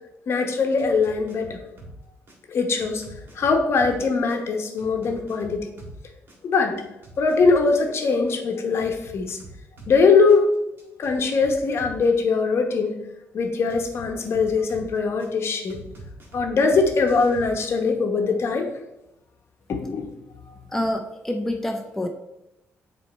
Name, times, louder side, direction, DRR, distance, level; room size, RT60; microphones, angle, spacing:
voice 1, 0.3-1.6 2.5-3.0 3.3-5.7 6.4-6.8 7.2-9.4 9.9-10.5 11.0-13.0 13.3-15.8 16.3-18.7 19.7-20.1, left 4 dB, 55° left, 4 dB, 0.9 m, -21 dB
sound 1, 0.8-2.0 2.3-6.0 6.3-10.0 10.3-12.0 13.7-15.3 15.7-17.6, right 1 dB, 45° right, 2.0 m, -44 dB
voice 2, 20.7-22.1, left 1 dB, 5° left, 3 dB, 0.5 m, -27 dB
7.6 x 3.2 x 4.2 m, 0.91 s
cardioid pair, 125°, 5 cm